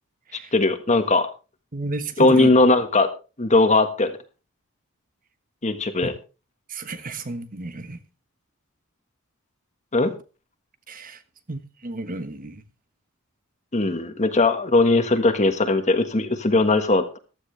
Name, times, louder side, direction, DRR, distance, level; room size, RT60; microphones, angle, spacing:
voice 1, 0.5-1.3 2.2-3.1 3.4-4.2 5.6-6.1 9.9-10.1 13.7-17.2, left 2 dB, 35° left, 1.5 m, -19 dB
voice 2, 1.7-2.5 6.7-8.0 10.9-11.2 11.5-12.6, right 2 dB, 40° right, 1.3 m, -32 dB
15.0 x 12.5 x 3.3 m
head